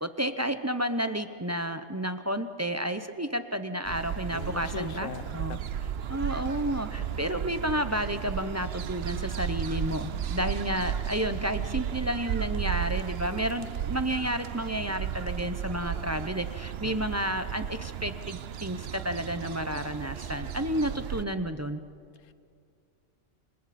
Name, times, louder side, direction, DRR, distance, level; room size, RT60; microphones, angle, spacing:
voice 1, 0.0-5.6 6.1-21.8, equal, 15° right, 9 dB, 0.5 m, -31 dB
sound 1, 3.9-21.2, right 9 dB, 60° right, 0.8 m, -34 dB
voice 2, 4.3-5.6 22.2-22.3, left 8 dB, 75° left, 14 dB, 1.1 m, -40 dB
29.5 x 25.5 x 4.3 m, 2.4 s
omnidirectional pair, 1.4 m